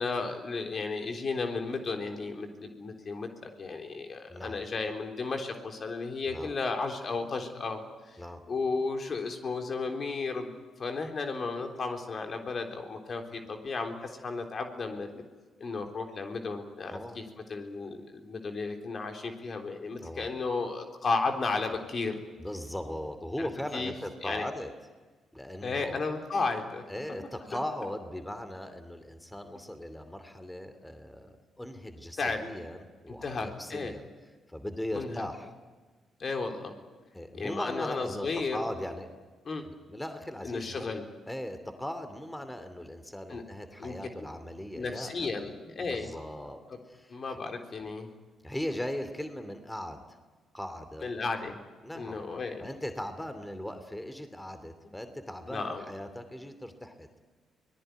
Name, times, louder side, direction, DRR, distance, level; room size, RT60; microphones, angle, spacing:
voice 1, 0.0-8.2 8.5-10.5 10.8-15.2 15.6-17.2 17.5-22.2 23.4-23.9 24.2-24.5 25.6-26.8 32.2-32.4 33.2-33.9 34.9-35.3 36.2-36.7 37.3-38.6 39.4-39.6 40.4-41.1 43.3-43.4 43.8-44.3 44.8-46.1 46.7-46.8 47.1-48.1 51.0-51.6 51.9-52.7 55.5-55.9, left 4 dB, 50° left, 4 dB, 3.6 m, -34 dB
voice 2, 4.3-4.6 6.3-6.5 8.2-8.4 16.9-17.2 20.0-20.3 22.4-24.7 25.3-26.0 26.9-34.0 34.5-35.5 37.1-39.1 39.7-40.9 41.3-45.4 45.9-46.6 46.9-47.1 48.4-50.0 50.5-51.1 51.8-52.2 52.6-57.1, left 1 dB, 10° left, 9 dB, 2.8 m, -39 dB
24.0 x 19.0 x 9.3 m, 1.4 s
hypercardioid pair, 50°, 0 cm